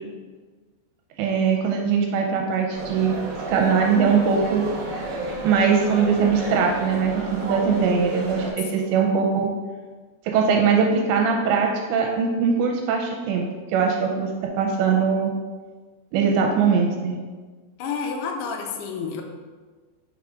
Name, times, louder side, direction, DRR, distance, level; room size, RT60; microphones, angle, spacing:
voice 1, 1.2-3.2 3.5-4.7 5.4-9.5 10.3-13.5 13.7-14.3 14.6-15.3 16.1-17.2, right 6 dB, 85° right, 1 dB, 2.8 m, -21 dB
sound 1, 2.7-8.5, right 2 dB, 65° right, 2.3 m, -32 dB
voice 2, 17.8-19.2, left 5 dB, 80° left, 1 dB, 2.4 m, -30 dB
6.3 x 3.5 x 5.0 m, 1.4 s
omnidirectional pair, 5.1 m